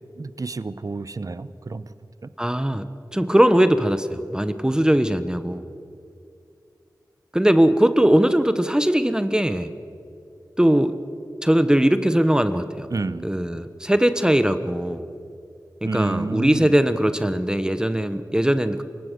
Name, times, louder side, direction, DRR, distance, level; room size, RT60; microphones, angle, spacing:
voice 1, 0.2-1.9 2.2-2.3 12.9-13.3 15.8-16.7, right 3 dB, 50° right, 15 dB, 0.8 m, -30 dB
voice 2, 2.4-5.7 7.3-9.7 10.6-11.0 11.4-12.9 13.2-15.1 15.8-18.8, right 1 dB, 10° right, 11 dB, 1.0 m, -20 dB
28.0 x 17.0 x 6.7 m, 2.5 s
wide cardioid pair, 55°, 7 cm